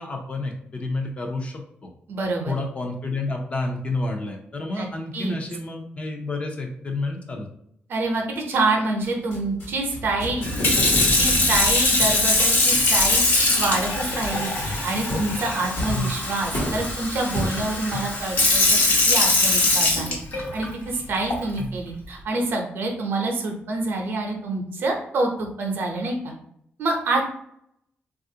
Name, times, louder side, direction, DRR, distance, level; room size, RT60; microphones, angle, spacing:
voice 1, 0.0-1.5 2.5-7.5 12.0-12.2 15.9-16.1 21.6-21.7, left 3 dB, 30° left, 2 dB, 0.5 m, -29 dB
voice 2, 2.1-2.6 4.7-4.9 5.1-5.4 7.9-10.5 11.2-18.8 19.1-26.3 26.8-27.2, right 2 dB, 65° right, 2 dB, 0.6 m, -27 dB
sound 1, 9.0-17.9, left 1 dB, 75° left, 1.1 m, -32 dB
Sink (filling or washing) / Fill (with liquid), 10.4-20.6 21.3-21.6, left 2 dB, 55° left, 0.8 m, -22 dB
3.3 x 2.4 x 2.7 m, 0.72 s
wide cardioid pair, 180°, 4 cm